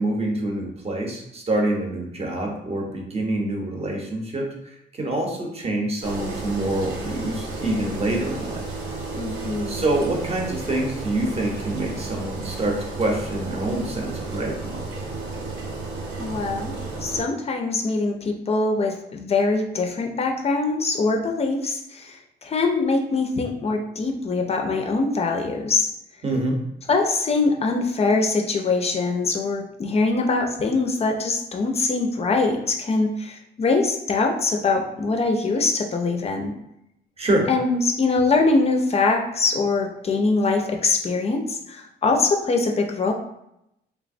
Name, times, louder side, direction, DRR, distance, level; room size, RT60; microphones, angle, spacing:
voice 1, 0.0-8.7 9.7-14.8 26.2-26.6 37.2-37.5, right 1 dB, 30° right, 0 dB, 0.7 m, -26 dB
Engine, 6.0-17.2, right 3 dB, 75° right, 0.7 m, -32 dB
voice 2, 9.1-9.9 16.2-16.7 17.0-25.9 26.9-36.5 37.5-43.1, left 3 dB, 30° left, 2 dB, 0.4 m, -23 dB
3.2 x 2.0 x 2.5 m, 0.81 s
cardioid pair, 90°, 20 cm